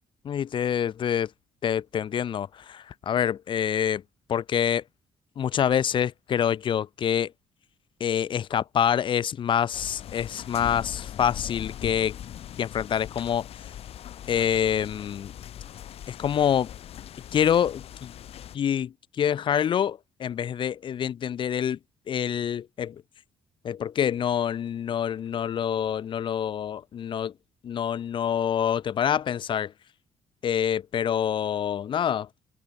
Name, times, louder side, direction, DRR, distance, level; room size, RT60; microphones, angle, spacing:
voice 1, 0.2-1.3 1.6-4.0 4.3-4.8 5.4-7.3 8.0-12.2 12.6-13.5 14.3-15.3 16.1-16.7 17.3-18.1 18.5-21.8 22.1-23.0 23.6-27.3 27.6-29.7 30.4-32.3, left 9 dB, 50° left, 0.6 m, -26 dB
sound 1, 9.7-18.6, left 11 dB, 65° left, 2.4 m, -40 dB
open air
cardioid pair, 90°, 11 cm